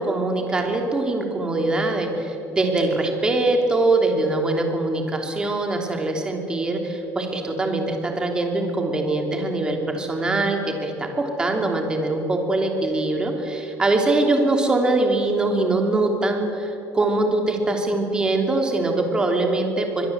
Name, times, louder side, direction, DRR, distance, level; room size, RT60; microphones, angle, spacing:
voice 1, 0.0-20.1, right 2 dB, 15° right, 3 dB, 3.2 m, -23 dB
25.0 x 21.5 x 8.1 m, 2.7 s
cardioid pair, 160°, 6 cm